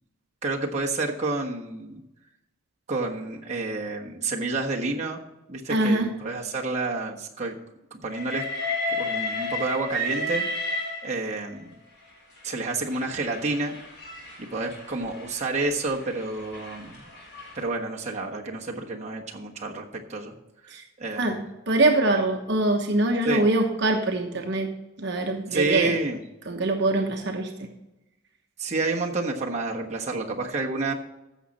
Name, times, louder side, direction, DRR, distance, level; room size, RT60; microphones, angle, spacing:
voice 1, 0.4-2.0 2.9-5.2 5.5-7.6 7.9-8.4 8.9-10.4 11.0-11.7 12.4-13.8 14.4-17.0 17.5-20.3 20.6-20.7 21.0-21.4 23.3-23.4 25.5-26.2 28.6-30.9, right 3 dB, 35° right, -1 dB, 1.3 m, -29 dB
voice 2, 5.7-6.1 20.7-20.8 21.2-21.4 21.7-24.7 25.0-25.9 26.5-27.7, right 2 dB, 55° right, 2 dB, 1.1 m, -23 dB
Train, 8.1-11.5 12.4-17.6, left 1 dB, 55° left, 4.6 m, -33 dB
15.0 x 6.5 x 4.2 m, 0.97 s
head